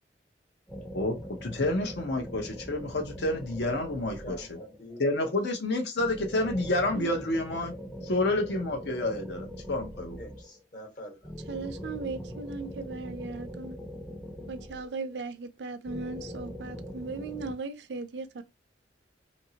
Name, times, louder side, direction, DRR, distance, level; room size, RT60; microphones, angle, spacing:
sound 1, 0.7-4.9 6.0-10.6 11.2-15.2 15.8-17.5, equal, 5° left, 0.5 m, -42 dB
voice 1, 1.4-4.5 5.0-7.7 8.0-10.2, left 2 dB, 70° left, 0.7 m, -29 dB
voice 2, 4.2-5.1 10.2-11.3, equal, 50° left, 1.2 m, -45 dB
voice 3, 11.5-13.8 14.5-18.4, right 4 dB, 75° right, 0.5 m, -37 dB
2.8 x 2.6 x 2.7 m
head